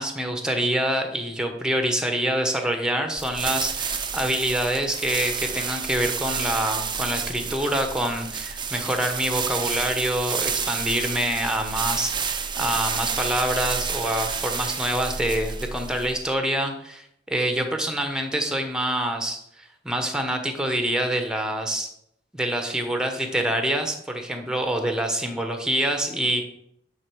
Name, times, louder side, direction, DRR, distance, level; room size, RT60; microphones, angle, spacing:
voice 1, 0.0-21.9 22.3-26.4, right 1 dB, 5° right, 5 dB, 1.2 m, -26 dB
sound 1, 3.2-16.3, right 6 dB, 25° right, 0.6 m, -30 dB
10.0 x 4.0 x 6.2 m, 0.73 s
head